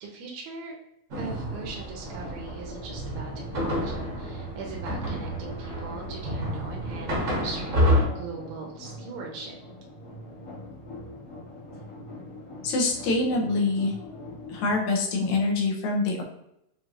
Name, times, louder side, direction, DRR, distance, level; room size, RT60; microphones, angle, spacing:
voice 1, 0.0-0.8 1.2-7.8 8.2-9.6, right 4 dB, 75° right, -1 dB, 1.9 m, -40 dB
sound 1, 1.1-8.1, equal, 55° right, 0.8 m, -29 dB
sound 2, 2.0-14.7, left 1 dB, 55° left, 1.0 m, -43 dB
voice 2, 12.6-13.9 14.5-16.2, left 3 dB, 80° left, 0 dB, 2.2 m, -25 dB
6.3 x 2.7 x 2.6 m, 0.77 s
omnidirectional pair, 3.4 m